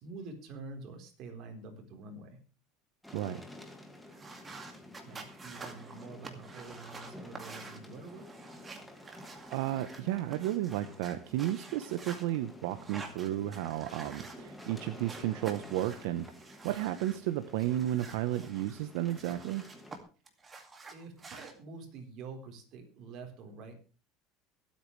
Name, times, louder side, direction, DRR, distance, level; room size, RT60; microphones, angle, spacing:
voice 1, 0.0-2.4 4.6-8.3 20.9-23.8, right 3 dB, 45° right, 3 dB, 4.0 m, -47 dB
sound 1, 3.0-20.0, left 1 dB, 5° left, 2.1 m, -51 dB
sound 2, 4.1-10.0 10.3-12.2 12.7-14.8 15.1-17.2 17.6-20.0 20.3-21.5, right 4 dB, 15° right, 2.2 m, -49 dB
voice 2, 9.5-16.3 16.6-19.6, right 13 dB, 75° right, 9 dB, 1.0 m, -33 dB
23.0 x 8.7 x 3.3 m, 0.35 s
cardioid pair, 150°, 0 cm